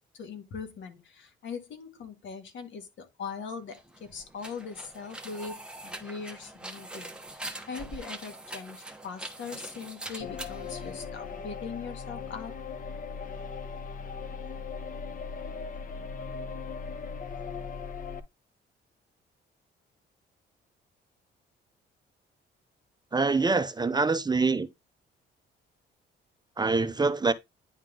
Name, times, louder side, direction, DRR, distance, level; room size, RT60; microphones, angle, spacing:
voice 1, 0.1-12.5, left 5 dB, 70° left, 1.8 m, -41 dB
sound 1, 3.6-11.5, right 2 dB, 5° right, 1.1 m, -43 dB
sound 2, 10.2-18.2, left 5 dB, 45° left, 0.9 m, -38 dB
voice 2, 23.1-24.7 26.6-27.3, right 4 dB, 20° right, 0.6 m, -25 dB
10.0 x 3.6 x 3.7 m
cardioid pair, 90°, 20 cm